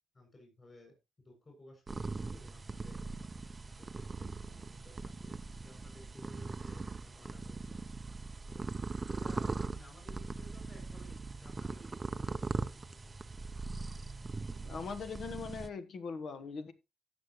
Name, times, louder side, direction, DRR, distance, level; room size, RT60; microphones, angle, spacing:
voice 1, 0.1-3.0 3.8-7.8 8.5-8.7 9.1-13.2, left 1 dB, 30° left, 6.8 m, -58 dB
sound 1, 1.9-15.7, right 3 dB, 25° right, 0.6 m, -40 dB
voice 2, 14.6-16.7, left 5 dB, 60° left, 1.4 m, -41 dB
17.0 x 6.4 x 3.1 m
cardioid pair, 90°, 0 cm